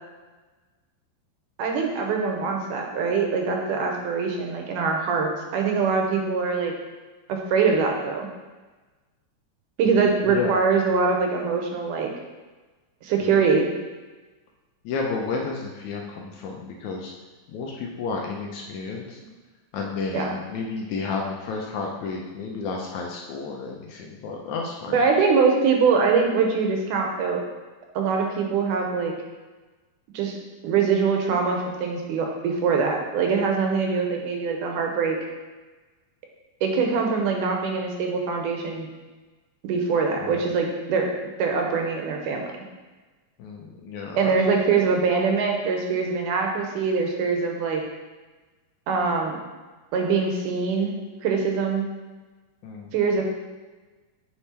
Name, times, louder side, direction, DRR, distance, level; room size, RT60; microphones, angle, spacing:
voice 1, 1.6-6.7 7.3-8.3 9.8-12.1 13.0-13.7 20.1-20.4 24.9-27.4 27.9-29.1 30.1-30.4 30.6-35.2 36.6-38.9 39.6-41.1 41.4-42.4 44.2-47.8 48.9-49.4 49.9-51.0 51.2-51.9 52.9-53.2, right 5 dB, 75° right, 2 dB, 2.3 m, -23 dB
voice 2, 9.9-10.5 13.2-13.3 14.8-17.1 17.5-19.2 19.7-25.0 40.2-40.4 43.4-44.4 52.6-52.9, left 4 dB, 75° left, 0 dB, 1.9 m, -32 dB
8.4 x 4.4 x 4.3 m, 1.3 s
omnidirectional pair, 3.8 m